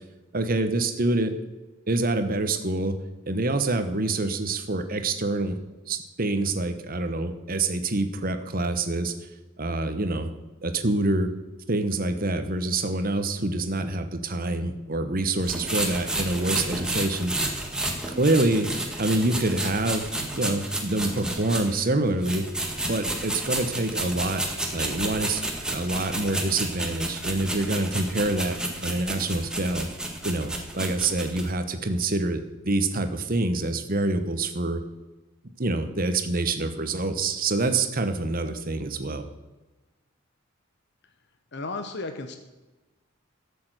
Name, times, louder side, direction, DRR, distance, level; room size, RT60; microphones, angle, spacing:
voice 1, 0.3-1.3 1.9-3.0 3.3-5.6 5.9-9.1 9.6-10.3 10.6-11.3 11.7-17.6 18.2-18.7 19.0-20.1 20.4-22.4 22.8-24.4 24.7-28.6 28.8-29.9 30.2-34.8 35.6-39.3, right 2 dB, 45° right, 8 dB, 1.1 m, -26 dB
sound 1, 15.4-21.8 22.2-31.5, right 1 dB, 5° right, 1.7 m, -31 dB
voice 2, 41.5-42.4, left 3 dB, 55° left, 6 dB, 1.0 m, -33 dB
13.0 x 6.9 x 8.0 m, 1.1 s
head